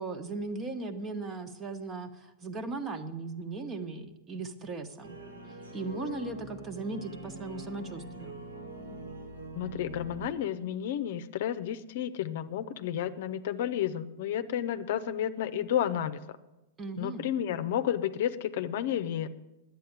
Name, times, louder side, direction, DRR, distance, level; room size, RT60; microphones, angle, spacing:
voice 1, 0.0-5.2 5.7-8.4 16.8-17.3, right 3 dB, 25° right, 9 dB, 1.2 m, -37 dB
sound 1, 5.0-10.3, equal, 85° right, 3.5 m, -43 dB
voice 2, 9.5-16.2 17.0-19.3, left 10 dB, 60° left, 12 dB, 0.7 m, -31 dB
10.5 x 8.4 x 8.0 m, 1.0 s
hypercardioid pair, 105°, 0 cm